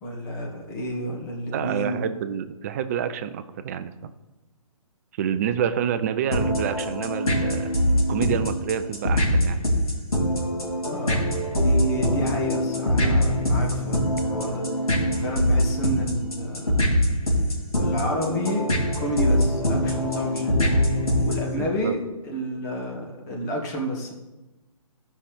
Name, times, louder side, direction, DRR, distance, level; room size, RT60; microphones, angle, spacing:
voice 1, 0.0-2.0 10.9-14.7 15.1-17.0 17.8-18.7 19.0-20.6 21.2-24.1, equal, 30° left, -1 dB, 2.0 m, -30 dB
voice 2, 1.5-4.1 5.2-7.7 8.1-9.6 21.5-22.0, right 8 dB, 25° right, 11 dB, 0.5 m, -28 dB
sound 1, 6.3-21.5, equal, 80° left, 3.4 m, -23 dB
15.0 x 5.6 x 3.6 m, 1.1 s
figure-of-eight pair, 135°, 18 cm